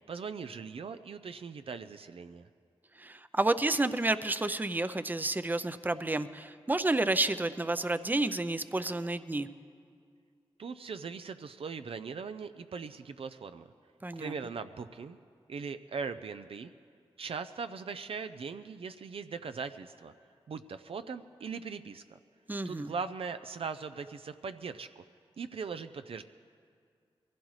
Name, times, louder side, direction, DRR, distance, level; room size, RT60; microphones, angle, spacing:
voice 1, 0.1-2.5 10.6-13.7 14.2-15.2 15.5-16.7 17.2-20.1 20.5-22.2 22.6-25.0 25.4-26.2, right 5 dB, 65° right, 9 dB, 0.5 m, -40 dB
voice 2, 3.0-9.5 14.0-14.3 22.5-22.9, right 2 dB, 20° right, 12 dB, 0.5 m, -30 dB
22.0 x 15.5 x 3.2 m, 2.2 s
cardioid pair, 55°, 10 cm